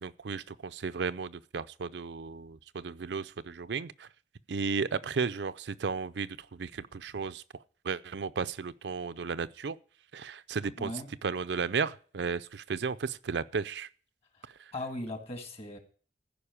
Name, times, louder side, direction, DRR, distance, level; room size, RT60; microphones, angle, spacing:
voice 1, 0.0-4.1 4.5-7.4 7.8-9.8 10.1-10.9 11.2-13.9 14.5-14.7, right 5 dB, 75° right, 0.5 m, -34 dB
voice 2, 10.8-11.1 14.7-15.8, left 1 dB, 35° left, 2.0 m, -38 dB
14.5 x 5.3 x 8.4 m
head